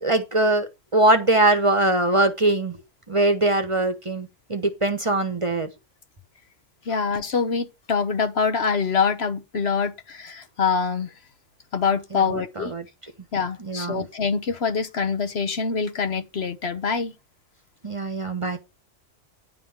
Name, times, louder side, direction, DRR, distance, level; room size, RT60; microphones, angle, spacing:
voice 1, 0.0-2.8 3.1-5.7 6.9-7.0 12.1-12.8 13.6-14.0 17.8-18.6, right 2 dB, 25° right, 1.0 m, -22 dB
voice 2, 6.8-11.1 11.7-12.7 13.3-17.1, left 5 dB, 55° left, 1.2 m, -25 dB
10.5 x 3.8 x 7.0 m
omnidirectional pair, 1.3 m